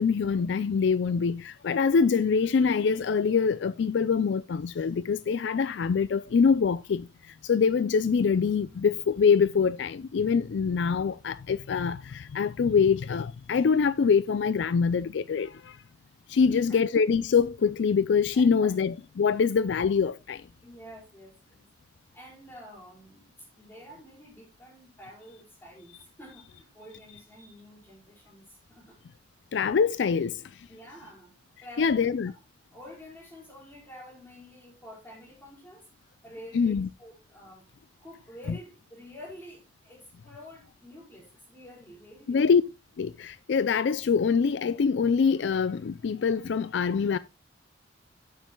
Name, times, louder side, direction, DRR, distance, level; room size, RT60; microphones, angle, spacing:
voice 1, 0.0-7.1 7.4-15.5 16.3-20.4 29.5-30.3 31.8-32.3 36.5-36.9 42.3-42.6 43.0-47.2, left 5 dB, 65° left, 0.4 m, -24 dB
voice 2, 16.3-16.8 18.3-18.7 20.6-21.6 22.1-29.0 30.7-31.3 31.6-32.1 32.7-37.7 38.0-42.7, equal, 10° left, 4.8 m, -49 dB
11.5 x 9.2 x 2.2 m
head